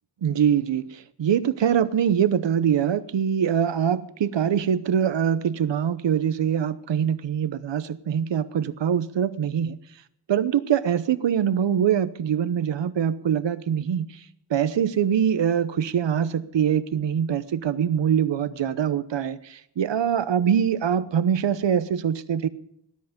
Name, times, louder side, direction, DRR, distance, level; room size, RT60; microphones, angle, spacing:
voice 1, 0.2-9.8 10.3-14.1 14.5-22.5, right 8 dB, 85° right, 0.9 m, -23 dB
19.0 x 10.5 x 5.1 m
wide cardioid pair, 125°, 42 cm